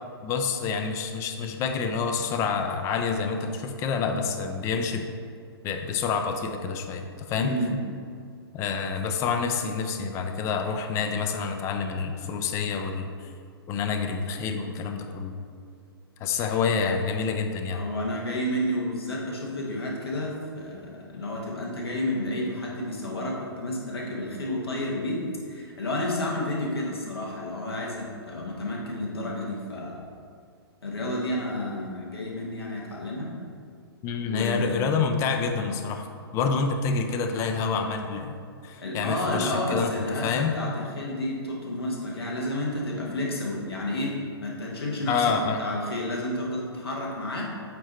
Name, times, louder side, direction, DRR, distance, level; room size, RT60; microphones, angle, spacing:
voice 1, 0.2-5.1 5.6-7.6 8.5-13.3 13.7-15.3 16.2-17.8 34.0-36.1 36.3-38.3 38.6-39.9 40.2-40.5 45.1-45.6, left 5 dB, 20° left, 6 dB, 0.4 m, -28 dB
voice 2, 7.4-7.8 17.7-30.0 30.8-33.3 34.3-34.9 38.8-47.4, left 1 dB, 70° left, -2 dB, 1.3 m, -31 dB
8.2 x 2.8 x 4.3 m, 2.2 s
figure-of-eight pair, 115°, 13 cm